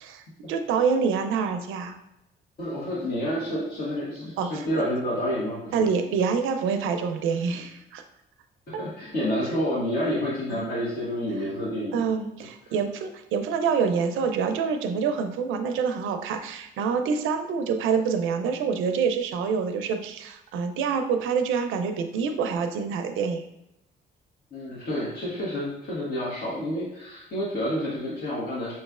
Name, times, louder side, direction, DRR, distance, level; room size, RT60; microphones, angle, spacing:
voice 1, 0.0-2.0 4.4-4.8 5.7-8.0 8.7-8.8 10.5-10.7 11.9-23.5, right 6 dB, 90° right, 7 dB, 0.5 m, -26 dB
voice 2, 2.6-5.9 8.7-12.0 24.5-28.7, equal, 50° left, -6 dB, 1.4 m, -29 dB
5.7 x 3.1 x 2.4 m, 0.87 s
cardioid pair, 90°, 20 cm